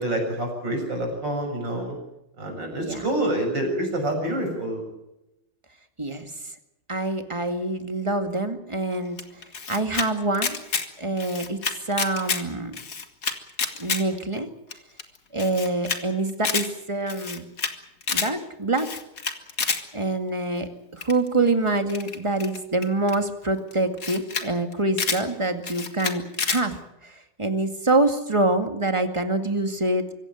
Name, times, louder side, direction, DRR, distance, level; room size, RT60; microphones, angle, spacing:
voice 1, 0.0-2.0 2.4-4.8, right 1 dB, 55° right, 2 dB, 7.5 m, -27 dB
voice 2, 6.0-6.3 6.9-9.2 9.7-10.6 11.0-11.6 11.9-12.8 13.8-14.5 15.3-17.5 18.1-18.9 19.9-26.8 27.0-30.1, right 2 dB, 15° right, 7 dB, 2.0 m, -25 dB
Camera, 9.2-10.1 10.3-10.9 11.2-12.4 12.7-14.0 14.4-14.5 14.7-14.8 15.0-15.1 15.4-16.0 16.3-16.7 17.1-17.7 18.0-18.3 18.7-19.8 21.0-21.3 21.9-23.2 23.7-23.8 24.0-24.5 24.7-25.2 25.6-26.6, left 5 dB, 45° left, 2.1 m, -28 dB
25.0 x 16.0 x 9.2 m, 0.90 s
omnidirectional pair, 2.3 m